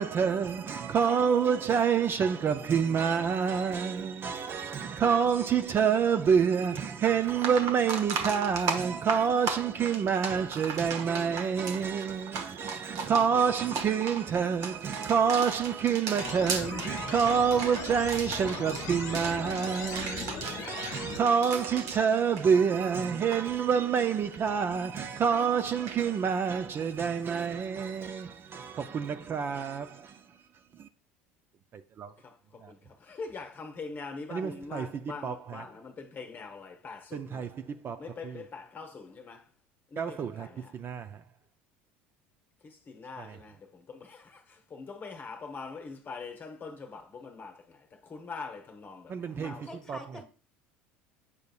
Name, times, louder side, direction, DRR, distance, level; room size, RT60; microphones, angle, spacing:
voice 1, 0.0-30.2 30.7-30.9 31.7-32.1 32.6-32.7 34.3-34.9 35.2-35.6 37.1-38.4 40.0-40.5 40.7-41.2 43.2-43.4 49.1-49.6 49.9-50.0, right 7 dB, 35° right, 0.4 m, -28 dB
sound 1, 6.8-6.9 7.3-22.9 23.1-23.4 25.9-26.0, right 4 dB, 60° right, 1.0 m, -36 dB
sound 2, 16.2-21.2, left 9 dB, 55° left, 0.6 m, -40 dB
voice 2, 32.2-37.5 38.0-39.5 39.9-40.7 42.6-49.8, left 4 dB, 30° left, 1.0 m, -43 dB
voice 3, 49.3-50.2, left 1 dB, 10° left, 1.4 m, -45 dB
8.3 x 5.1 x 2.3 m
hypercardioid pair, 75°, 6 cm